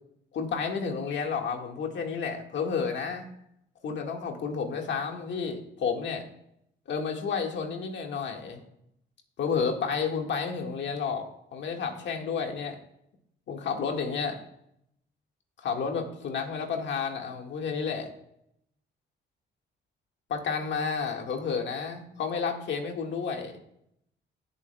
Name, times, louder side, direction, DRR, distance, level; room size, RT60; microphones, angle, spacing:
voice 1, 0.3-3.3 3.8-6.2 6.9-8.6 9.4-11.2 11.5-12.8 13.5-14.4 15.6-18.1 20.3-23.6, left 5 dB, 65° left, 3 dB, 1.7 m, -31 dB
19.5 x 7.3 x 2.3 m, 0.76 s
cardioid pair, 90°, 20 cm